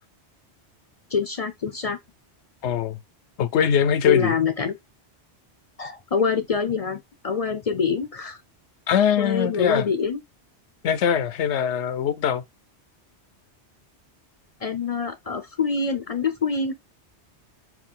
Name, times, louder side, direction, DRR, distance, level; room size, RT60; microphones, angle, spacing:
voice 1, 1.1-2.0 4.1-4.8 5.8-8.4 9.2-10.2 14.6-16.7, left 5 dB, 50° left, 0.5 m, -25 dB
voice 2, 2.6-3.0 3.4-4.4 8.9-9.9 10.8-12.5, left 8 dB, 85° left, 0.9 m, -22 dB
4.7 x 2.4 x 3.7 m
omnidirectional pair, 1.1 m